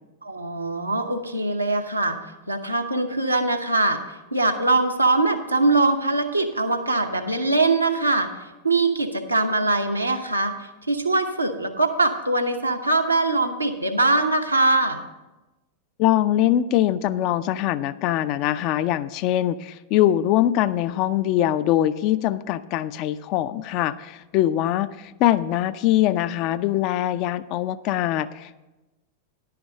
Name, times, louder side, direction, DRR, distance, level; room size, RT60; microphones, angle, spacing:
voice 1, 0.2-2.2 2.5-4.0 4.3-8.3 8.6-15.0, right 2 dB, 85° right, 4 dB, 0.8 m, -22 dB
voice 2, 16.0-28.6, left 13 dB, 40° left, 14 dB, 0.4 m, -22 dB
11.0 x 5.8 x 6.4 m, 1.1 s
figure-of-eight pair, 90°, 0 cm